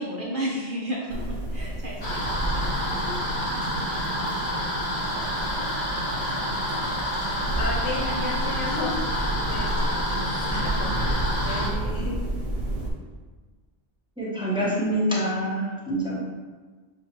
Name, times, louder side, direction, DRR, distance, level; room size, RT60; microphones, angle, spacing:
voice 1, 0.0-2.8 3.1-3.3, right 1 dB, 55° right, -3 dB, 0.7 m, -33 dB
sound 1, 1.1-12.9, right 1 dB, 80° right, 1.2 m, -31 dB
sound 2, 2.0-11.7, equal, 35° left, 0.7 m, -28 dB
voice 2, 7.5-12.2, left 2 dB, 75° left, -2 dB, 1.2 m, -33 dB
voice 3, 14.2-16.2, right 1 dB, 5° right, -6 dB, 0.6 m, -26 dB
6.4 x 2.3 x 2.9 m, 1.4 s
omnidirectional pair, 1.2 m